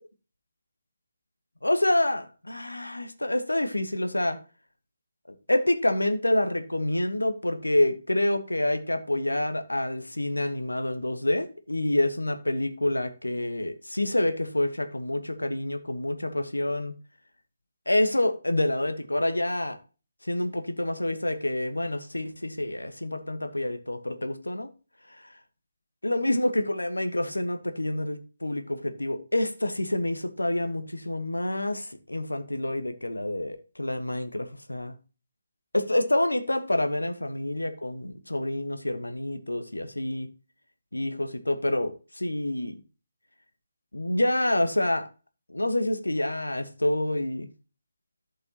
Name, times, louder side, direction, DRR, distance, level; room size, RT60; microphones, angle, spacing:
voice 1, 1.6-4.4 5.3-16.9 17.9-19.8 20.2-24.7 25.1-25.3 26.0-34.9 35.7-40.3 40.9-42.8 43.9-45.1 45.5-47.5, left 1 dB, 75° left, 1.3 m, -27 dB
14.0 x 5.6 x 2.9 m
figure-of-eight pair, 145°, 0 cm